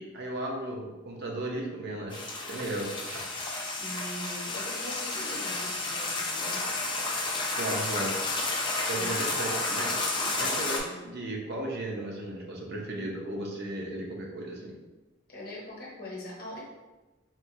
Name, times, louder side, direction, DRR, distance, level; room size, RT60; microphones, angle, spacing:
voice 1, 0.0-3.3 7.5-8.2 8.9-10.0 10.3-14.8, right 1 dB, 50° right, -1 dB, 0.6 m, -35 dB
sound 1, 2.1-10.8, left 2 dB, 20° left, 0.4 m, -31 dB
voice 2, 3.8-6.7 8.9-9.3 15.3-16.6, left 1 dB, 45° left, -4 dB, 0.9 m, -41 dB
4.3 x 2.2 x 2.6 m, 1.1 s
head